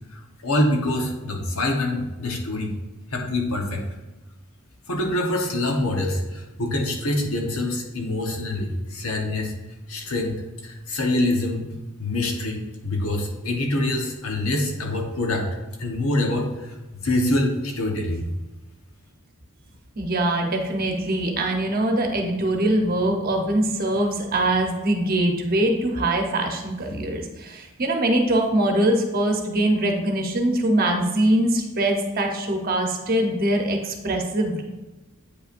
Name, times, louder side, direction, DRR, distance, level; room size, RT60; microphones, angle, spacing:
voice 1, 0.1-2.7 3.1-3.8 4.9-9.5 9.9-10.3 10.6-15.5 15.8-16.7 17.0-18.3, left 1 dB, 80° left, 2 dB, 1.1 m, -25 dB
voice 2, 20.0-34.6, right 1 dB, 45° right, 2 dB, 0.9 m, -23 dB
8.5 x 5.5 x 2.6 m, 1.1 s
head